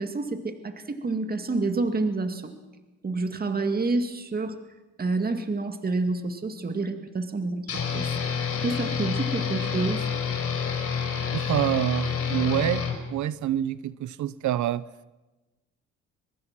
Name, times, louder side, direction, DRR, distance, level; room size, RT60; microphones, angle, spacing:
voice 1, 0.0-2.5 3.0-4.6 5.0-8.1 8.6-10.1, right 3 dB, 30° right, 7 dB, 2.2 m, -28 dB
sound 1, 7.7-13.0, left 6 dB, 50° left, 4.6 m, -28 dB
voice 2, 11.3-14.9, right 12 dB, 75° right, 17 dB, 0.8 m, -27 dB
24.0 x 21.5 x 6.1 m, 1.1 s
cardioid pair, 90°, 30 cm